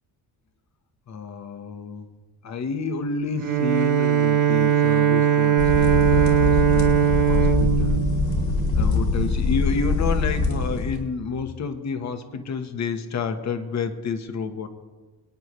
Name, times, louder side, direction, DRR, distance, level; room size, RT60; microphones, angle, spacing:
voice 1, 1.1-8.1 8.7-14.7, left 4 dB, 45° left, 7 dB, 1.2 m, -30 dB
Bowed string instrument, 3.4-9.0, right 9 dB, 50° right, 0.9 m, -20 dB
sound 1, 5.6-10.9, left 4 dB, 65° left, 3.0 m, -23 dB
25.0 x 9.8 x 3.2 m, 1.3 s
cardioid pair, 160°, 40 cm